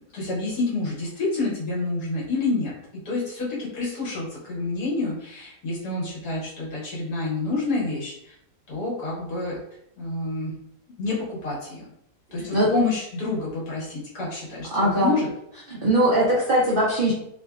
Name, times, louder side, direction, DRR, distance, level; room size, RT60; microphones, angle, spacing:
voice 1, 0.1-2.7 3.1-8.3 8.7-9.6 10.0-10.6 11.0-11.9 12.3-15.3, left 3 dB, 75° left, -6 dB, 1.8 m, -28 dB
voice 2, 12.4-12.7 14.7-15.1 15.7-17.1, right 1 dB, 85° right, -5 dB, 0.4 m, -21 dB
3.6 x 2.2 x 2.3 m, 0.79 s
omnidirectional pair, 1.7 m